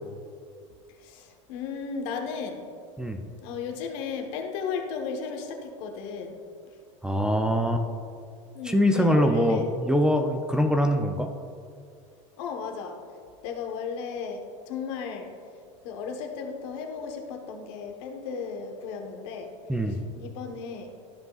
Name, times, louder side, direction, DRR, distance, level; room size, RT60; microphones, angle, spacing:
voice 1, 1.0-2.6 3.4-6.4 8.5-9.7 10.6-10.7 12.4-12.9 13.4-15.3 15.8-19.5 20.1-20.9, left 6 dB, 65° left, 3 dB, 1.2 m, -35 dB
voice 2, 7.0-7.8 8.6-11.3 19.7-20.0, equal, 5° right, 4 dB, 0.5 m, -23 dB
13.0 x 5.4 x 2.4 m, 2.3 s
supercardioid pair, 120°, 16 cm